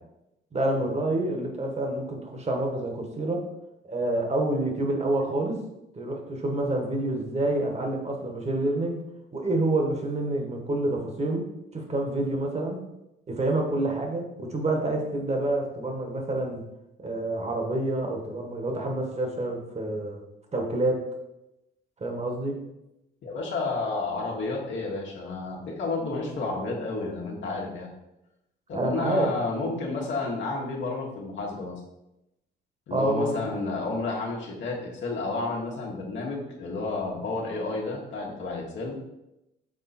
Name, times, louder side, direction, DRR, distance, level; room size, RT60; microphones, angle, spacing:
voice 1, 0.5-3.4 3.8-5.6 5.9-9.0 9.3-11.4 11.7-12.8 13.3-16.6 17.0-20.2 20.5-21.1 22.0-22.6 28.7-29.3 32.9-33.4, right 2 dB, 35° right, 2 dB, 1.5 m, -27 dB
voice 2, 23.2-27.9 28.7-31.8 32.9-39.0, left 3 dB, 70° left, -2 dB, 1.4 m, -31 dB
6.4 x 3.8 x 4.3 m, 0.90 s
cardioid pair, 90°, 20 cm